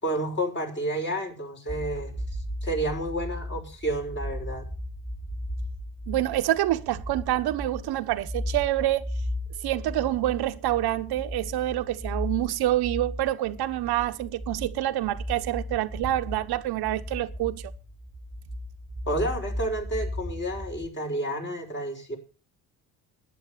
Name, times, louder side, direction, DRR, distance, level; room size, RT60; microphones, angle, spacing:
voice 1, 0.0-2.1 2.6-4.7 19.1-22.2, right 1 dB, 30° left, 5.9 m, -30 dB
sound 1, 1.7-20.9, left 1 dB, 5° right, 1.2 m, -36 dB
voice 2, 6.1-9.0 9.6-17.6, right 14 dB, 80° right, 1.2 m, -27 dB
12.0 x 10.5 x 7.3 m
cardioid pair, 95°, 38 cm